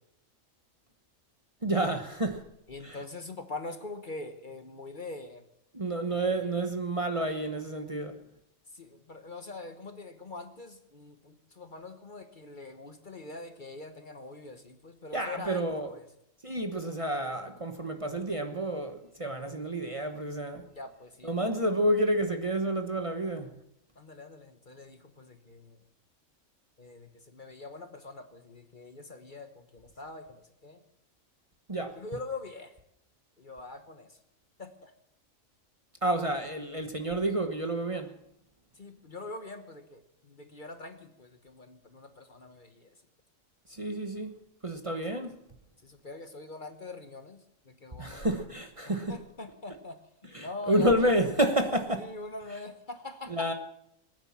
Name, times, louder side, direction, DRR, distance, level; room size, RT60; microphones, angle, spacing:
voice 1, 1.6-2.4 2.8-3.0 5.7-8.2 15.1-15.9 16.4-20.6 21.2-23.5 31.7-32.0 36.0-38.1 43.7-45.3 48.0-49.2 50.3-52.0 53.3-53.5, right 1 dB, 25° right, 1.1 m, -29 dB
voice 2, 2.7-5.4 6.4-6.8 8.7-16.1 20.7-21.4 21.8-21.9 23.9-25.8 26.8-30.8 31.9-32.7 33.4-34.2 34.6-34.9 38.7-43.0 45.3-45.4 45.8-48.6 48.8-51.3 51.9-53.5, left 2 dB, 40° left, 1.2 m, -44 dB
21.0 x 9.5 x 7.3 m
omnidirectional pair, 1.4 m